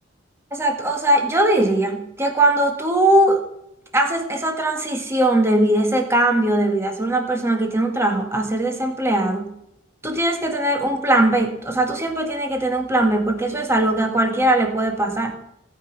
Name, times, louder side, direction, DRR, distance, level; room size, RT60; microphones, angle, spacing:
voice 1, 0.5-3.4 3.9-9.5 10.0-15.4, right 1 dB, 15° right, 2 dB, 1.8 m, -20 dB
18.0 x 6.0 x 9.3 m, 0.80 s
head